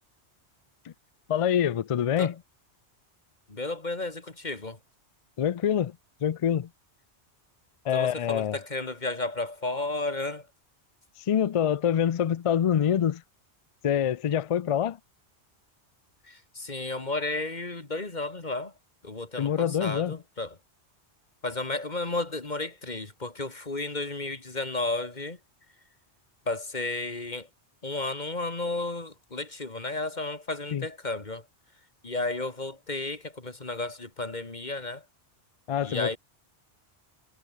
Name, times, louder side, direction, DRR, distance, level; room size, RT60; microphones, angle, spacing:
voice 1, 1.3-2.3 5.4-6.7 7.8-8.6 11.2-13.2 13.8-15.0 19.4-20.2 30.7-30.9 35.7-36.2, left 9 dB, 60° left, 0.3 m, -25 dB
voice 2, 3.5-4.8 7.9-10.5 16.2-18.7 19.0-20.5 21.4-25.4 26.5-27.5 27.8-31.4 32.0-35.0 35.8-36.2, left 2 dB, 40° left, 2.4 m, -33 dB
omnidirectional pair, 1.1 m